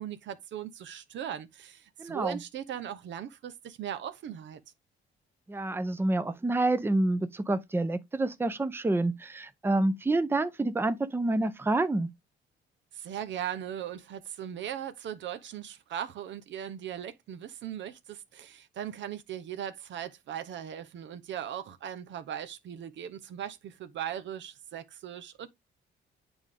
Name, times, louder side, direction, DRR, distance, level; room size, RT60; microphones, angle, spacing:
voice 1, 0.0-4.6 12.9-25.5, right 10 dB, 70° right, 0.8 m, -39 dB
voice 2, 2.0-2.4 5.5-12.1, right 2 dB, 10° right, 0.6 m, -28 dB
8.9 x 3.6 x 3.4 m
cardioid pair, 90°, 20 cm